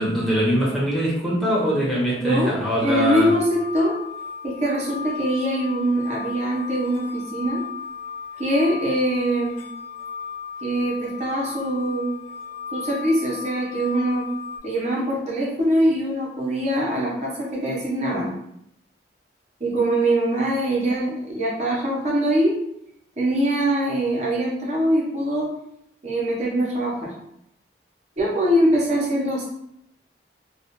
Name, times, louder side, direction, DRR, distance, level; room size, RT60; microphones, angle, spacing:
voice 1, 0.0-3.3, equal, ahead, -7 dB, 0.8 m, -22 dB
voice 2, 2.2-2.6 2.8-4.0 4.4-7.6 8.4-9.6 10.6-12.1 12.7-14.3 14.6-18.3 19.6-22.6 23.2-25.5 26.0-27.1 28.2-29.4, right 1 dB, 40° right, -4 dB, 0.8 m, -23 dB
sound 1, 2.9-14.6, left 6 dB, 45° left, 0.8 m, -35 dB
2.3 x 2.3 x 2.9 m, 0.76 s
head